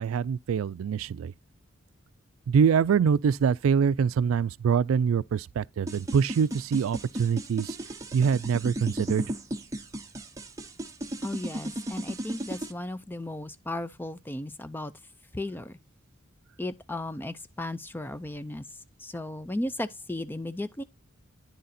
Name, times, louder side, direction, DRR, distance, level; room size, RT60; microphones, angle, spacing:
voice 1, 0.0-1.3 2.5-7.8 8.1-9.2, right 6 dB, 85° right, 0.3 m, -24 dB
sound 1, 5.9-12.7, right 1 dB, 15° right, 0.8 m, -35 dB
voice 2, 11.2-14.9 15.3-15.8 16.6-20.8, left 1 dB, 10° left, 0.4 m, -35 dB
10.5 x 3.9 x 4.2 m
head